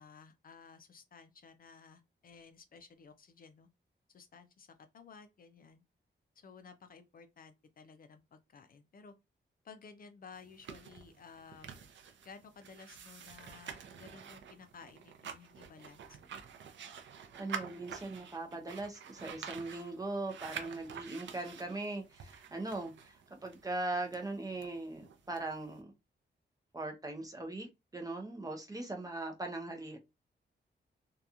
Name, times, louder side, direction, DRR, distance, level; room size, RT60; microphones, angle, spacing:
voice 1, 0.0-3.7 4.1-5.8 6.4-9.1 9.6-11.8 12.2-16.2, left 5 dB, 50° left, 0.4 m, -55 dB
sound 1, 10.3-25.8, right 7 dB, 80° right, 0.5 m, -49 dB
voice 2, 17.4-25.9 26.7-30.0, right 2 dB, 20° right, 0.5 m, -40 dB
2.8 x 2.2 x 2.3 m
wide cardioid pair, 160°, 19 cm